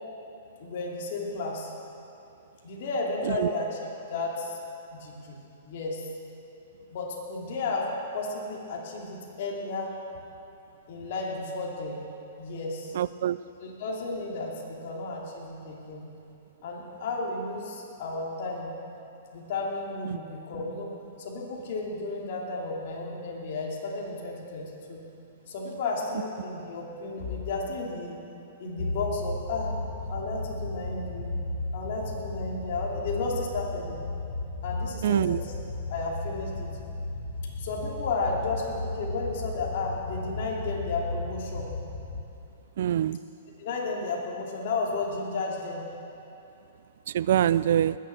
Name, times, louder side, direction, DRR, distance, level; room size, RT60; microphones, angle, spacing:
voice 1, 0.6-1.7 2.6-4.6 4.9-5.4 5.6-6.1 6.9-9.9 10.9-12.1 12.4-13.0 13.6-16.1 16.6-18.7 19.3-20.9 21.2-25.0 25.5-28.2 28.6-29.7 30.1-31.4 31.7-34.0 34.6-35.5 35.9-36.8 37.6-41.7 43.6-45.9, left 3 dB, 55° left, -2 dB, 2.7 m, -33 dB
voice 2, 13.0-13.4 20.1-20.2 35.0-35.4 42.8-43.2 47.1-48.0, right 10 dB, 65° right, 18 dB, 0.3 m, -24 dB
sound 1, 28.8-42.2, left 2 dB, 80° left, 2.0 m, -35 dB
19.5 x 7.5 x 7.0 m, 2.8 s
hypercardioid pair, 145°, 0 cm